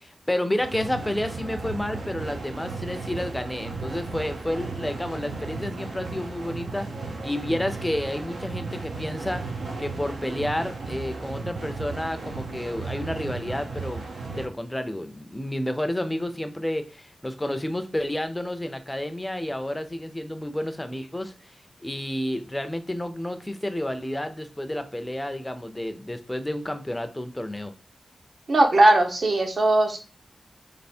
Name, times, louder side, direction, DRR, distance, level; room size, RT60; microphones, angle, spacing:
voice 1, 0.0-27.7, left 1 dB, 10° left, 8 dB, 0.5 m, -30 dB
sound 1, 0.6-14.5, right 3 dB, 90° right, 0.9 m, -35 dB
voice 2, 28.5-30.0, right 2 dB, 50° right, 3 dB, 0.7 m, -19 dB
3.4 x 3.0 x 4.2 m, 0.35 s
wide cardioid pair, 150°, 0 cm